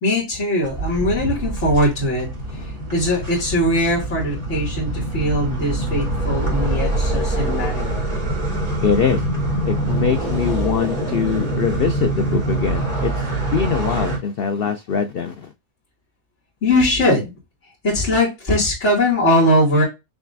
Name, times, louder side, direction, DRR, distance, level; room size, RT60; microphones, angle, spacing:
voice 1, 0.0-2.3 2.6-7.9 16.6-17.3 17.8-19.8, left 1 dB, 50° left, 2.7 m, -20 dB
sound 1, 0.6-14.2, right 2 dB, 25° right, 2.7 m, -24 dB
voice 2, 8.8-9.2 9.6-15.5, left 7 dB, 85° left, 0.5 m, -23 dB
6.2 x 3.3 x 2.5 m
omnidirectional pair, 1.6 m